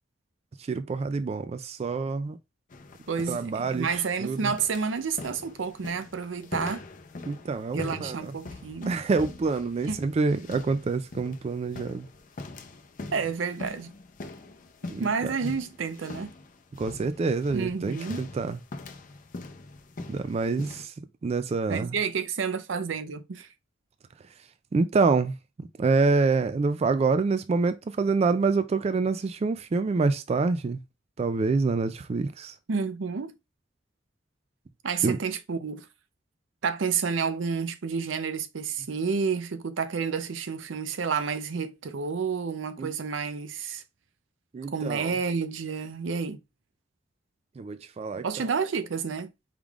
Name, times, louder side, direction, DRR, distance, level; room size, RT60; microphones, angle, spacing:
voice 1, 0.7-2.4 3.3-4.5 7.3-8.3 8.9-12.1 14.9-15.3 16.8-18.6 20.1-20.9 21.2-22.0 24.7-30.8 31.2-32.5 35.0-35.2 42.8-42.9 44.5-45.1 47.6-48.3, right 4 dB, 35° right, 0.3 m, -27 dB
sound 1, 2.7-20.9, left 2 dB, 45° left, 0.6 m, -43 dB
voice 2, 3.1-6.8 7.7-8.9 9.8-10.0 10.3-10.5 13.1-13.9 15.0-16.3 17.5-18.2 21.7-23.5 32.7-33.3 34.8-35.9 36.6-43.8 44.7-46.4 48.2-49.3, right 5 dB, 80° right, 0.6 m, -30 dB
4.8 x 3.6 x 2.4 m
head